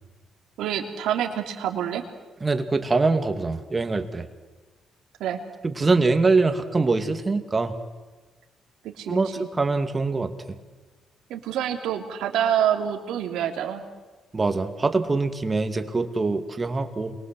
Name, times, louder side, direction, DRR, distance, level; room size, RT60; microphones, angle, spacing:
voice 1, 0.6-2.0 5.2-5.4 8.8-9.5 11.3-13.8, right 10 dB, 85° right, 3 dB, 3.1 m, -27 dB
voice 2, 2.4-4.3 5.6-7.7 9.1-10.3 14.3-17.1, right 3 dB, 25° right, 7 dB, 2.4 m, -23 dB
28.5 x 23.5 x 7.9 m, 1.3 s
cardioid pair, 90°, 0 cm